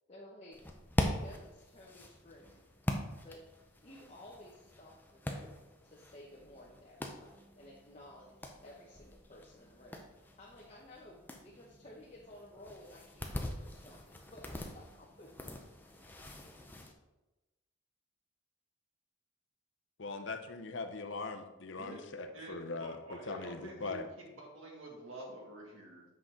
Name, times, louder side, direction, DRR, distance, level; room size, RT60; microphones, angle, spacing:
voice 1, 0.1-2.6 3.2-3.4 3.8-5.6 5.9-15.3, left 1 dB, 30° left, -4 dB, 0.9 m, -55 dB
sound 1, 0.5-16.9, left 1 dB, 10° left, 0.5 m, -42 dB
voice 2, 20.0-23.0 23.3-24.1, left 3 dB, 65° left, 6 dB, 0.7 m, -40 dB
voice 3, 21.8-26.0, right 1 dB, 80° right, -1 dB, 1.9 m, -48 dB
7.6 x 5.7 x 3.7 m, 1.1 s
head